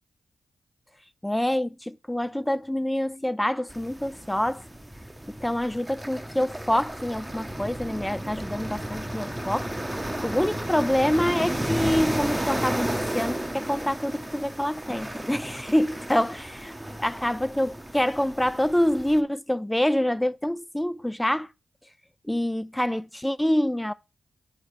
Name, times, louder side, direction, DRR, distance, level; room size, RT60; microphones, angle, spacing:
voice 1, 1.2-4.6 5.3-9.7 10.2-16.7 17.0-21.5 22.3-23.9, left 1 dB, 10° left, 0.4 m, -26 dB
sound 1, 3.7-19.2, right 1 dB, 10° right, 0.8 m, -33 dB
8.8 x 3.2 x 4.8 m
cardioid pair, 55°, 0 cm